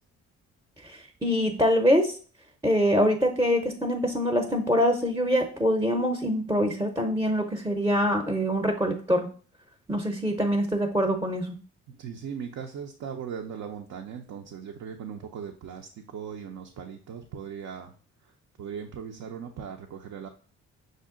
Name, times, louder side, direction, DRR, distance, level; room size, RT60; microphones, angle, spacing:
voice 1, 0.8-2.2 2.6-9.3 9.9-11.5, equal, 10° right, 4 dB, 0.6 m, -24 dB
voice 2, 11.9-17.9 18.6-20.3, right 7 dB, 65° right, 3 dB, 0.6 m, -38 dB
6.3 x 2.1 x 3.7 m, 0.42 s
cardioid pair, 90°, 30 cm